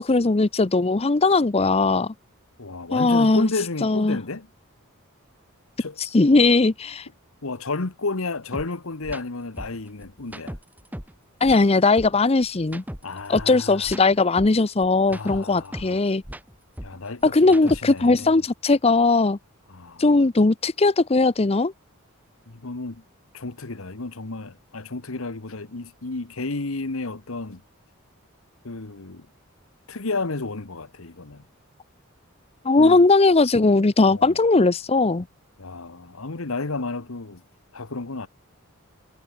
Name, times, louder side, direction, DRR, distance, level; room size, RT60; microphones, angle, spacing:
voice 1, 0.0-2.1 2.9-3.5 3.8-4.2 6.0-7.1 11.4-12.8 13.3-16.2 17.2-19.4 20.0-21.7 32.6-35.3, left 3 dB, 30° left, 0.6 m, -19 dB
voice 2, 2.6-4.5 5.8-6.0 7.4-10.6 13.0-13.9 15.1-16.0 16.8-18.4 19.7-20.0 22.5-23.0 23.3-27.6 28.6-29.3 29.9-31.4 32.8-33.0 34.0-34.4 35.6-37.4 37.7-38.3, left 3 dB, 75° left, 1.3 m, -32 dB
sound 1, 8.5-8.7 9.0-9.2 9.6-11.2 11.4-13.6 13.8-16.0 16.2-18.1, equal, 10° right, 1.7 m, -38 dB
head